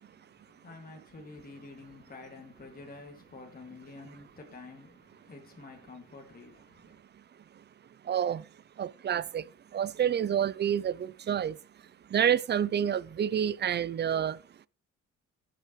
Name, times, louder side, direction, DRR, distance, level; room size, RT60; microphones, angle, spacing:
voice 1, 0.0-7.0, left 3 dB, 30° left, 2.3 m, -49 dB
voice 2, 8.0-8.5 8.8-9.5 9.7-11.6 12.1-14.4, right 9 dB, 35° right, 0.5 m, -28 dB
17.5 x 6.7 x 3.1 m
cardioid pair, 90°, 30 cm